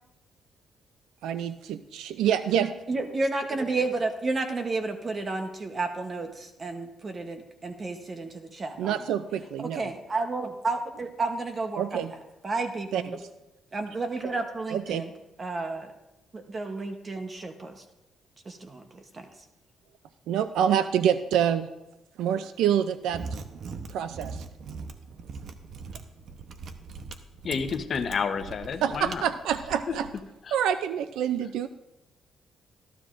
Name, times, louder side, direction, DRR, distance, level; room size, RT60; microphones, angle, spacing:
voice 1, 1.2-2.7 8.8-9.9 11.8-12.1 12.9-13.0 14.7-15.1 20.3-21.7 22.2-23.2 23.9-24.4 28.8-30.1 30.5-31.7, right 9 dB, 85° right, 12 dB, 0.4 m, -26 dB
voice 2, 2.9-9.0 9.6-12.1 12.4-13.2 13.7-15.1 15.4-15.9 16.3-17.8 18.5-18.8 19.1-19.3, right 3 dB, 35° right, 6 dB, 0.9 m, -31 dB
Mechanisms, 23.0-30.2, right 4 dB, 60° right, 0.8 m, -41 dB
voice 3, 27.4-29.3 29.9-30.0 30.4-30.5, left 6 dB, 50° left, 7 dB, 0.9 m, -30 dB
14.5 x 12.5 x 2.5 m, 0.94 s
cardioid pair, 90°, 0 cm